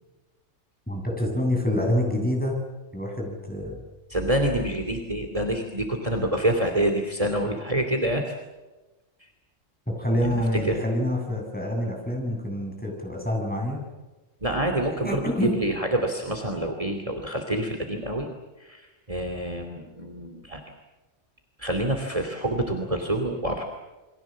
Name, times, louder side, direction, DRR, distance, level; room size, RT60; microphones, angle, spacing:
voice 1, 0.9-2.6 2.9-3.8 10.0-13.8 15.0-15.5, left 1 dB, 5° left, 0 dB, 7.6 m, -26 dB
voice 2, 4.1-8.4 9.2-9.3 10.3-10.8 14.4-18.3 18.6-20.6 21.6-23.6, right 1 dB, 25° right, 4 dB, 2.9 m, -27 dB
29.0 x 24.0 x 7.5 m, 1.1 s
omnidirectional pair, 1.3 m